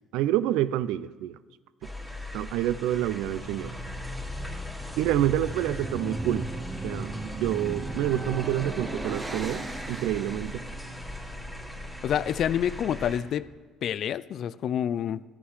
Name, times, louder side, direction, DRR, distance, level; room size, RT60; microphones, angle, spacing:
voice 1, 0.1-1.4 1.8-1.9 2.3-3.7 5.0-6.5 6.8-10.6, right 13 dB, 75° right, 0.3 m, -28 dB
sound 1, 1.8-13.2, left 1 dB, 5° right, 2.2 m, -39 dB
sound 2, 5.4-10.7, right 2 dB, 25° right, 1.1 m, -35 dB
voice 2, 12.0-13.4 13.8-15.2, left 9 dB, 60° left, 0.3 m, -28 dB
12.5 x 8.2 x 3.2 m
hypercardioid pair, 60°, 0 cm